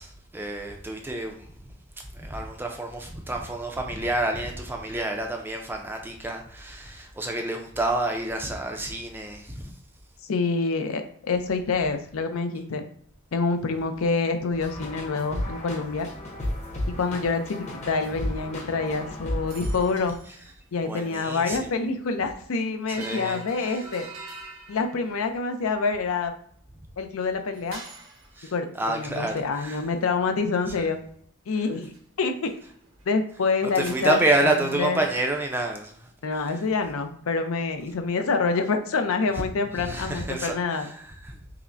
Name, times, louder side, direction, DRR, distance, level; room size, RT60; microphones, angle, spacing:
voice 1, 0.0-1.5 2.1-9.7 20.8-21.7 23.0-23.8 28.4-28.5 28.8-29.8 30.7-30.9 33.7-36.6 39.4-39.5 39.7-41.4, right 2 dB, 10° right, 0.4 m, -29 dB
voice 2, 10.3-12.8 13.3-16.1 16.9-20.1 20.7-24.1 24.7-26.3 27.0-27.8 28.5-31.0 31.5-31.9 32.2-32.5 33.1-34.5 34.8-35.1 36.2-40.9, left 4 dB, 80° left, 0.5 m, -27 dB
sound 1, 14.6-20.0, left 1 dB, 35° left, 0.8 m, -33 dB
sound 2, 19.5-20.5 20.8-20.9 22.9-25.3 27.5-28.4 31.9-32.0 32.3-33.3 33.6-34.6, right 3 dB, 70° right, 0.9 m, -44 dB
5.5 x 2.0 x 2.5 m
head